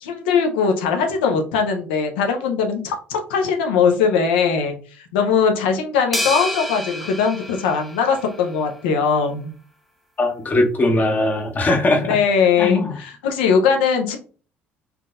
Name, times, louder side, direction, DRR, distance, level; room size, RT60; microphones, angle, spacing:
voice 1, 0.0-4.8 5.1-9.5 11.9-14.2, left 6 dB, 70° left, 3 dB, 0.7 m, -20 dB
sound 1, 6.1-8.6, left 1 dB, ahead, 0.5 m, -29 dB
voice 2, 10.2-12.2 12.6-13.0, left 2 dB, 30° left, 3 dB, 0.9 m, -20 dB
3.6 x 2.9 x 2.4 m, 0.38 s
figure-of-eight pair, 55°, 6 cm